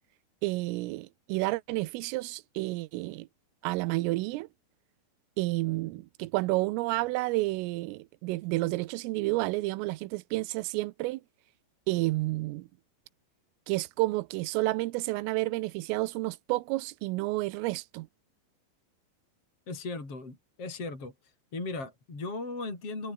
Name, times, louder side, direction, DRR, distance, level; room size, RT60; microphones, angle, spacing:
voice 1, 0.4-3.3 3.6-4.5 5.4-11.2 11.9-12.7 13.7-18.1, right 20 dB, 90° right, 3.5 m, -30 dB
voice 2, 19.7-21.1 21.5-23.1, left 3 dB, 30° left, 7.6 m, -37 dB
omnidirectional pair, 5.7 m